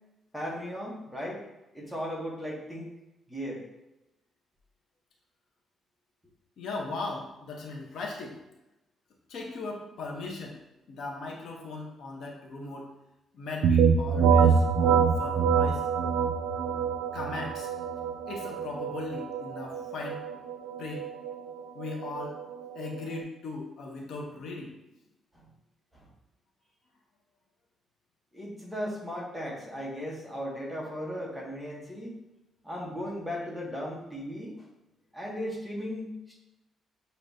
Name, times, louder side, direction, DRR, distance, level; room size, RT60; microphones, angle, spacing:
voice 1, 0.3-1.5 1.7-2.9 3.3-3.6 25.3-25.4 25.9-26.1 28.3-32.1 32.6-34.7 35.1-36.4, equal, ahead, -4 dB, 1.0 m, -36 dB
voice 2, 6.6-8.4 9.3-10.6 10.9-12.9 13.3-15.9 17.1-17.7 18.3-20.3 20.8-21.1 21.7-22.4 22.7-24.8, left 3 dB, 65° left, 0 dB, 0.8 m, -38 dB
sound 1, 13.6-23.2, right 6 dB, 85° right, 0.4 m, -26 dB
6.6 x 2.9 x 2.7 m, 0.93 s
cardioid pair, 145°, 0 cm